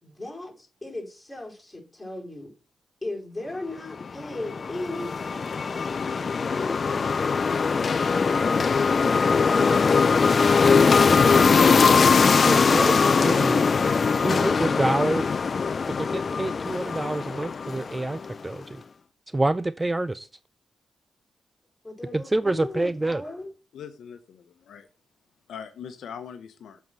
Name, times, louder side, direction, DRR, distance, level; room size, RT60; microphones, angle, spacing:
voice 1, 0.0-2.5 3.0-7.1 12.1-13.9 14.3-15.3 21.8-23.5, left 2 dB, 15° left, 4.7 m, -37 dB
sound 1, 4.0-18.4, left 5 dB, 50° left, 0.4 m, -21 dB
voice 2, 12.0-12.9 13.2-13.6 14.1-15.2 16.0-18.8 19.3-20.3 22.1-23.2, right 2 dB, 20° right, 0.4 m, -27 dB
voice 3, 23.7-24.9 25.5-26.8, left 7 dB, 80° left, 0.9 m, -41 dB
7.3 x 4.6 x 6.2 m
cardioid pair, 70°, 0 cm